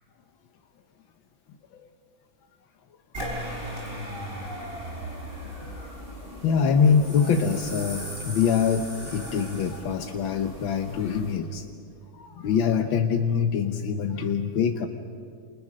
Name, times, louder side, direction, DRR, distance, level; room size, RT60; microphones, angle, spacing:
sound 1, 3.1-11.3, equal, 25° right, 6.0 m, -38 dB
voice 1, 6.2-11.7 12.1-14.9, left 6 dB, 90° left, 6 dB, 1.8 m, -24 dB
29.0 x 28.0 x 6.5 m, 2.4 s
omnidirectional pair, 2.1 m